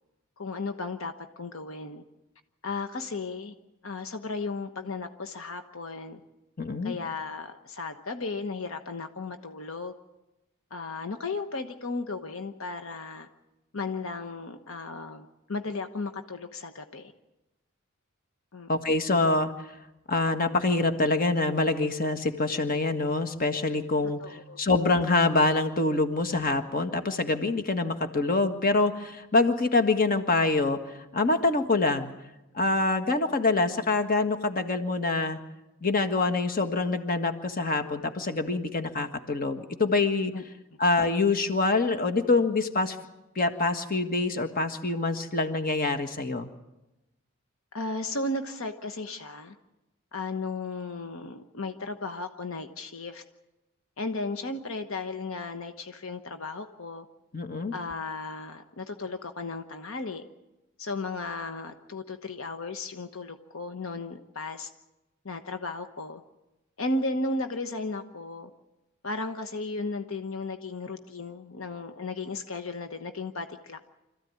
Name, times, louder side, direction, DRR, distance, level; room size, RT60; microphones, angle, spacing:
voice 1, 0.4-2.0 2.6-3.5 3.8-6.2 6.8-9.9 10.7-13.3 13.7-17.1 18.5-18.7 24.2-24.6 40.3-40.4 47.7-49.5 50.1-53.2 54.0-57.1 57.7-60.2 60.8-64.7 65.2-66.2 66.8-68.5 69.0-73.8, left 3 dB, 75° left, 8 dB, 1.1 m, -35 dB
voice 2, 6.6-6.9 18.7-19.5 20.1-24.2 24.6-30.8 31.1-32.1 32.5-35.4 35.8-40.3 40.8-43.0 43.3-46.5 57.3-57.7, left 3 dB, 45° left, 8 dB, 1.6 m, -25 dB
26.0 x 14.5 x 9.6 m, 0.99 s
head